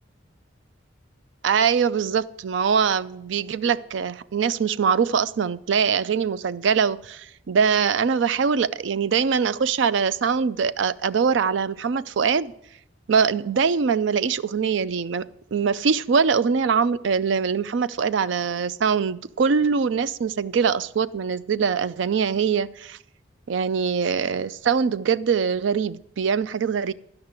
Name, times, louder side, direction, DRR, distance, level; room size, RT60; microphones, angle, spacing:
voice 1, 1.4-12.5 13.1-23.0 23.5-26.9, right 6 dB, 70° right, 0.4 m, -23 dB
12.0 x 5.8 x 8.1 m
head